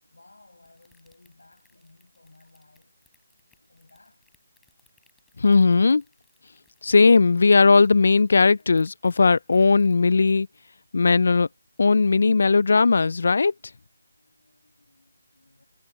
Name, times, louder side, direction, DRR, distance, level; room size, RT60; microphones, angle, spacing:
voice 1, 0.0-2.9 3.6-4.3 13.5-15.6, left 2 dB, 85° left, 7.0 m, -58 dB
sound 1, 0.6-12.3 12.5-12.9 13.3-13.4, left 5 dB, 5° left, 5.2 m, -66 dB
voice 2, 5.4-6.0 6.8-10.5 10.9-11.5 11.8-13.5, left 4 dB, 60° left, 0.4 m, -18 dB
figure-of-eight pair, 165°, 0 cm